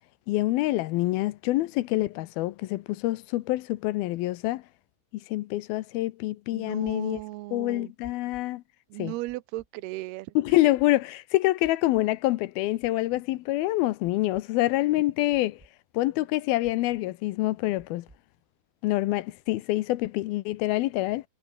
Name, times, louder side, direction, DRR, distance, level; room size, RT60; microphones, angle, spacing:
voice 1, 0.3-4.6 5.1-7.2 7.5-8.6 9.0-9.1 10.4-15.6 15.9-18.1 18.8-21.2, left 17 dB, 80° left, 2.4 m, -26 dB
voice 2, 6.5-7.9 8.9-10.3, right 19 dB, 80° right, 2.7 m, -36 dB
sound 1, 6.8-7.2 8.0-8.4 9.3-9.7 10.5-10.8 11.6-12.0 12.8-13.2 14.0-14.4 15.3-15.7 16.6-17.0 17.8-18.2, right 2 dB, 35° right, 0.4 m, -54 dB
omnidirectional pair, 4.7 m